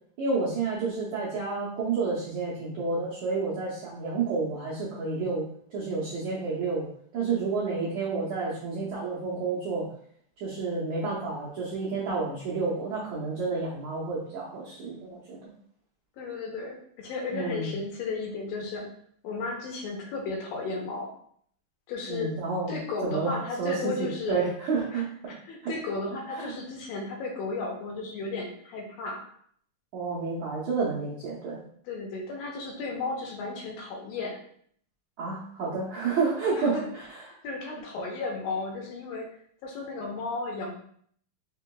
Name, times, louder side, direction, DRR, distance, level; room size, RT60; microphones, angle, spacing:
voice 1, 0.2-5.5 5.7-9.9 10.4-15.5 17.3-17.7 22.1-22.8 23.0-25.3 26.3-26.5 29.9-31.6 35.2-37.0, right 4 dB, 90° right, -6 dB, 1.5 m, -30 dB
voice 2, 16.2-18.9 19.2-21.1 21.9-22.4 22.7-24.4 24.9-29.2 31.9-34.4 36.6-36.9 37.4-39.3 39.6-40.7, left 3 dB, 80° left, 0 dB, 2.5 m, -34 dB
5.5 x 2.8 x 2.2 m, 0.62 s
omnidirectional pair, 4.2 m